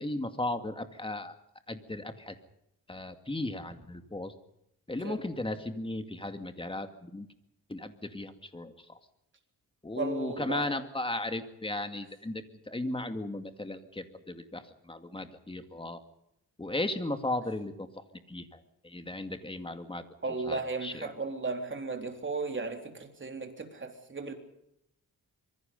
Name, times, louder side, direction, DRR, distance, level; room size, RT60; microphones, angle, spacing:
voice 1, 0.0-1.3 1.7-2.4 2.9-4.3 4.9-7.3 7.7-9.0 9.8-16.0 16.6-20.0 20.4-21.1, left 2 dB, 15° left, 8 dB, 2.2 m, -36 dB
voice 2, 9.9-10.7 20.2-24.3, right 3 dB, 35° right, 4 dB, 3.8 m, -35 dB
25.5 x 23.0 x 5.4 m, 0.79 s
wide cardioid pair, 125°, 36 cm